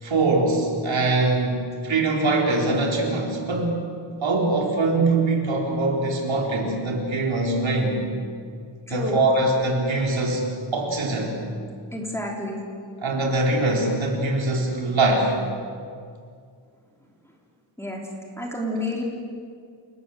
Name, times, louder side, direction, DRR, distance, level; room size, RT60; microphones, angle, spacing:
voice 1, 0.0-3.8 4.2-8.0 8.9-10.5 10.7-11.3 13.0-15.3, right 2 dB, 75° right, 0 dB, 4.3 m, -22 dB
voice 2, 8.9-9.2 11.9-12.6 17.8-18.0 18.4-19.0, left 1 dB, 5° left, -1 dB, 3.7 m, -29 dB
28.5 x 19.0 x 7.9 m, 2.2 s
wide cardioid pair, 175°, 47 cm